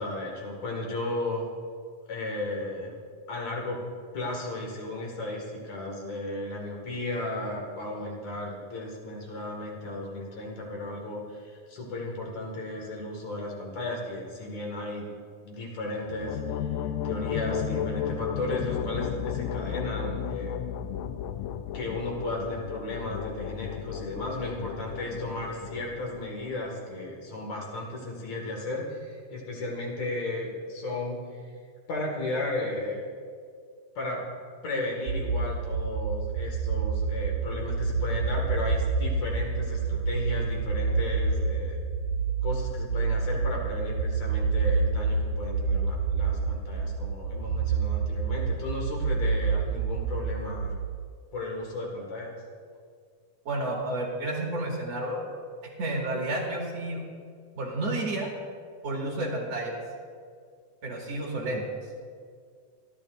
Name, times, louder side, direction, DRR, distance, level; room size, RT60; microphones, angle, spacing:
voice 1, 0.0-1.5 2.1-3.0 3.3-3.8 4.1-15.1 15.4-20.7 21.7-31.2 31.9-33.0 33.9-34.2 34.6-41.8 42.4-50.7 51.3-52.4, left 2 dB, 60° left, -1 dB, 3.3 m, -34 dB
sound 1, 16.0-26.7, left 8 dB, 80° left, 1.6 m, -34 dB
sound 2, 35.1-51.0, right 4 dB, 75° right, 2.2 m, -28 dB
voice 2, 53.4-55.3 55.8-57.0 57.5-58.3 58.8-59.8 60.8-61.6, right 1 dB, 55° right, -2 dB, 3.0 m, -31 dB
24.5 x 12.0 x 2.6 m, 2.1 s
omnidirectional pair, 3.6 m